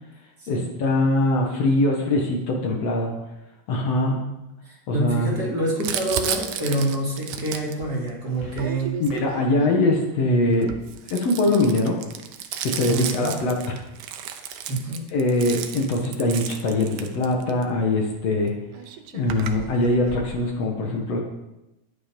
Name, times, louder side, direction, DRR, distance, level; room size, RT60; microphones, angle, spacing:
voice 1, 0.5-3.1 3.7-4.2 4.9-5.3 9.0-10.7 11.1-12.0 12.6-13.8 15.1-18.5 19.1-21.2, left 2 dB, 60° left, 1 dB, 2.4 m, -22 dB
voice 2, 4.6-9.0 12.8-13.3 14.7-15.0, right 1 dB, 35° right, -4 dB, 3.1 m, -27 dB
Crumpling crinkling, 5.8-9.8 10.5-17.6 18.5-18.6 18.7-20.3, right 9 dB, 85° right, 2.3 m, -33 dB
11.5 x 9.5 x 5.2 m, 0.95 s
omnidirectional pair, 3.4 m